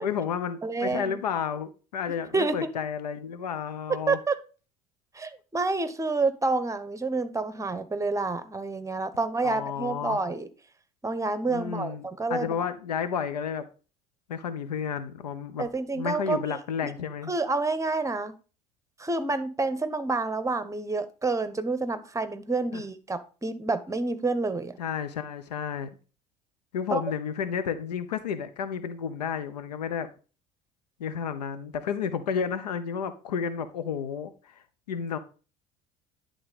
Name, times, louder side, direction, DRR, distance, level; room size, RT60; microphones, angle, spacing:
voice 1, 0.0-4.2 9.4-10.2 11.5-13.7 14.3-15.7 15.9-17.3 22.7-22.8 24.8-25.9 26.7-30.1 31.0-34.6 34.9-35.2, left 7 dB, 80° left, 0.8 m, -31 dB
voice 2, 0.6-1.2 2.1-2.7 4.1-4.3 5.1-10.5 11.0-12.5 15.6-16.6 16.8-16.9 17.3-18.4 19.0-24.8 26.9-27.0, right 3 dB, 15° right, 1.1 m, -28 dB
11.0 x 3.8 x 5.1 m
hypercardioid pair, 65°, 20 cm